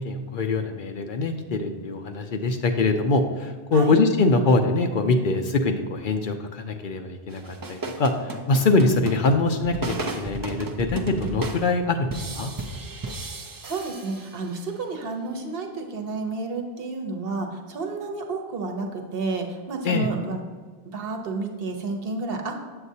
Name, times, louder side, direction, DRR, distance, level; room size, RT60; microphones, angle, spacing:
voice 1, 0.0-12.5 19.8-20.1, left 3 dB, 60° left, 5 dB, 0.7 m, -23 dB
sound 1, 7.3-14.7, right 2 dB, 35° right, 0.3 m, -34 dB
voice 2, 13.4-20.4 20.8-22.6, right 3 dB, 65° right, 3 dB, 1.1 m, -31 dB
7.9 x 7.4 x 2.7 m, 1.5 s
omnidirectional pair, 1.1 m